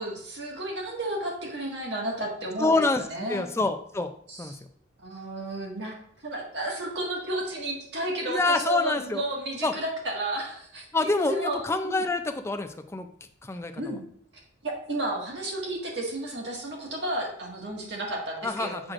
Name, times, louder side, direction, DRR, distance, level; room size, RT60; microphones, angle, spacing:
voice 1, 0.0-2.8 3.1-3.4 4.3-4.4 5.0-6.0 6.2-12.0 13.8-14.0 14.6-18.9, right 1 dB, 65° right, -2 dB, 1.8 m, -32 dB
voice 2, 2.6-4.1 4.4-4.6 8.3-9.2 9.6-9.8 10.9-13.1 13.4-14.0 18.4-18.9, left 3 dB, 15° left, 7 dB, 0.4 m, -27 dB
7.4 x 6.3 x 2.5 m, 0.63 s
head